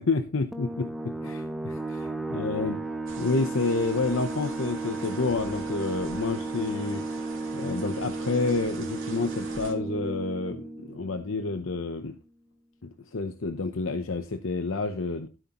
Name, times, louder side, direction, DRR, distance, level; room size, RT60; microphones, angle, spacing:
voice 1, 0.0-2.8 3.2-7.0 7.5-12.1 12.8-15.3, left 3 dB, 75° left, 8 dB, 0.8 m, -29 dB
sound 1, 0.5-11.8, right 3 dB, ahead, 0.8 m, -34 dB
sound 2, 3.1-9.7, right 3 dB, 75° right, 2.8 m, -45 dB
13.0 x 8.0 x 3.0 m, 0.31 s
head